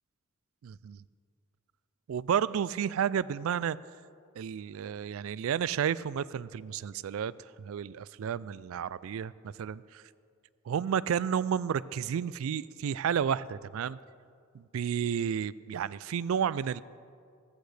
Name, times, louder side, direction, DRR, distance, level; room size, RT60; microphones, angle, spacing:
voice 1, 0.6-1.0 2.1-3.8 4.4-7.3 7.6-10.0 10.7-14.0 14.5-16.8, right 8 dB, 75° right, 19 dB, 0.3 m, -31 dB
15.5 x 14.5 x 3.3 m, 2.3 s
head